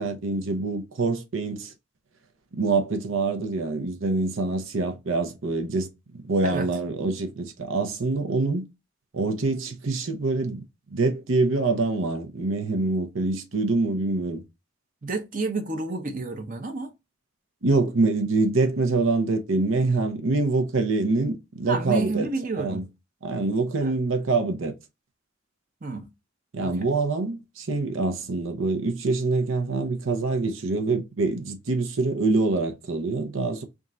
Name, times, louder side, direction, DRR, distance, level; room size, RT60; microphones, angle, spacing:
voice 1, 0.0-1.7 2.5-8.7 9.1-10.6 10.9-14.4 17.6-22.3 22.6-22.8 23.2-24.7 26.5-33.6, right 3 dB, 85° right, 0.8 m, -25 dB
voice 2, 15.0-16.9 21.7-22.8 23.8-24.0 25.8-26.1 26.6-26.7, right 3 dB, 45° right, 0.8 m, -30 dB
3.6 x 2.5 x 4.1 m
head